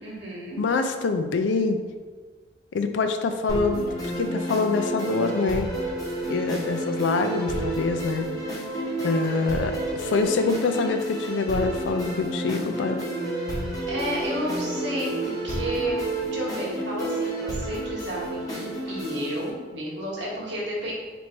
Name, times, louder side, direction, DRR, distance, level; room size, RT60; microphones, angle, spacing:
voice 1, 0.0-0.6 13.8-20.9, right 1 dB, 80° right, -4 dB, 1.2 m, -32 dB
voice 2, 0.6-1.8 2.7-5.7 6.3-8.3 9.0-13.0, left 4 dB, 90° left, 7 dB, 0.4 m, -25 dB
sound 1, 3.5-19.5, right 1 dB, 20° left, 0.8 m, -30 dB
3.1 x 2.6 x 4.4 m, 1.5 s
head